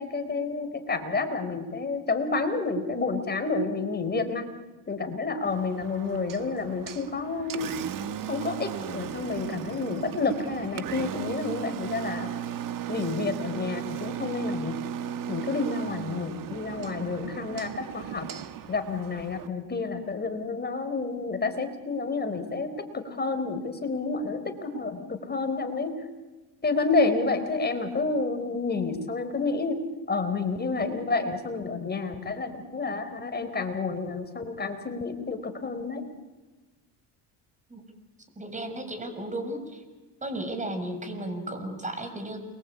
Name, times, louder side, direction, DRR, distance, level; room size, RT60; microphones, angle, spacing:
voice 1, 0.0-4.5 4.9-7.8 8.3-12.3 12.9-14.9 15.3-18.3 18.7-26.0 26.6-29.8 30.1-36.1, left 3 dB, 25° left, 7 dB, 4.3 m, -29 dB
Engine, 5.4-19.5, right 10 dB, 50° right, 1.7 m, -36 dB
voice 2, 38.4-39.8 40.2-42.4, right 1 dB, 15° right, 7 dB, 6.4 m, -34 dB
29.0 x 23.5 x 8.5 m, 1.2 s
cardioid pair, 105°, 42 cm